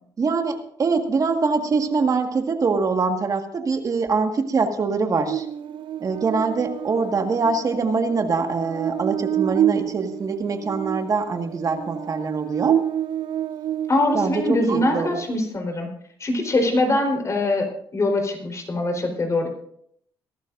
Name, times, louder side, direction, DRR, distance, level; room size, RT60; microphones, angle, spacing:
voice 1, 0.2-5.5 6.0-12.8 14.1-15.2, right 4 dB, 40° right, 5 dB, 1.8 m, -23 dB
Buzz, 5.3-14.7, right 10 dB, 65° right, 0.5 m, -28 dB
voice 2, 13.9-15.9 16.2-19.5, left 2 dB, 35° left, 3 dB, 4.1 m, -23 dB
21.5 x 12.0 x 2.6 m, 0.68 s
cardioid pair, 80°, 9 cm